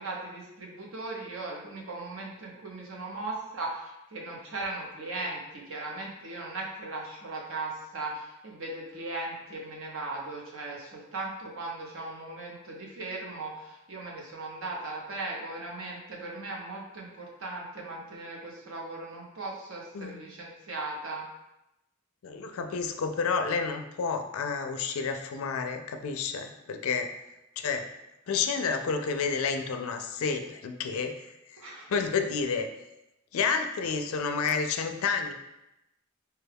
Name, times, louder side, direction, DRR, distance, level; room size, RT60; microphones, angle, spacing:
voice 1, 0.0-21.3 31.6-31.9, right 2 dB, 65° right, -1 dB, 0.8 m, -38 dB
voice 2, 22.2-27.1 27.6-27.9 28.3-31.6 31.9-32.7 33.3-35.3, left 5 dB, 70° left, 6 dB, 0.4 m, -30 dB
4.5 x 2.3 x 3.4 m, 0.92 s
head